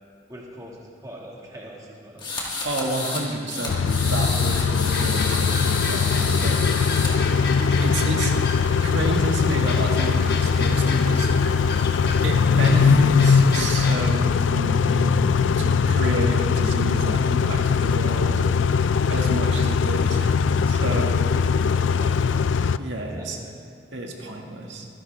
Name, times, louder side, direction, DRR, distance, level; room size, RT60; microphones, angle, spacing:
voice 1, 0.3-2.2 21.8-22.4 23.0-23.5, equal, 20° right, -3 dB, 1.8 m, -43 dB
sound 1, 2.2-3.2 3.5-7.1, left 3 dB, 25° left, 2.2 m, -30 dB
voice 2, 2.6-6.6 7.8-8.5 8.8-11.3 12.2-18.4 19.1-21.2 22.8-23.4 23.9-24.8, right 1 dB, 85° right, 0 dB, 1.8 m, -30 dB
Car / Idling / Accelerating revving vroom, 3.7-22.8, left 5 dB, 85° left, 0.4 m, -21 dB
sound 2, 4.9-14.0, left 3 dB, 55° left, 1.4 m, -34 dB
25.5 x 11.0 x 3.4 m, 2.4 s
head